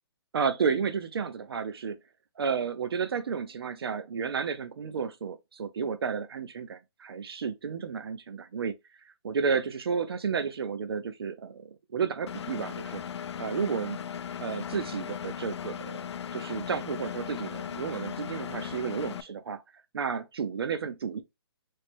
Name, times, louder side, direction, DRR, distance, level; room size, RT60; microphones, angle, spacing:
voice 1, 0.3-2.0 2.4-8.7 9.0-13.0 13.4-14.0 14.4-16.0 16.3-19.6 19.9-21.2, right 6 dB, 65° right, 0.5 m, -32 dB
Engine, 12.3-19.2, left 8 dB, 85° left, 0.4 m, -37 dB
3.2 x 2.0 x 4.2 m
hypercardioid pair, 175°, 14 cm